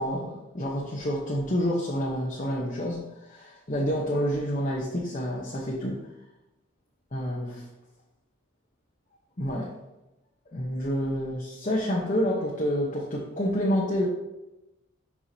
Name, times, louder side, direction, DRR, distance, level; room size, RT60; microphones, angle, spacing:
voice 1, 0.0-6.0 7.1-7.6 9.4-9.7 10.5-14.1, equal, 35° left, -4 dB, 1.0 m, -28 dB
11.0 x 4.8 x 2.8 m, 0.96 s
head